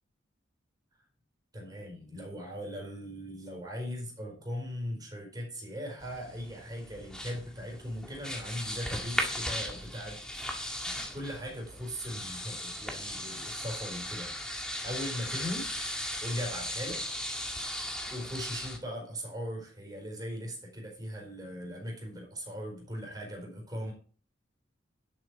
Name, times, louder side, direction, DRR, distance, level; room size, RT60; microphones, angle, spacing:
voice 1, 1.5-15.7 16.2-17.0 18.1-23.9, equal, 20° right, 1 dB, 4.4 m, -39 dB
sound 1, 6.0-18.8, left 1 dB, 5° left, 1.9 m, -37 dB
11.0 x 7.9 x 4.8 m, 0.42 s
head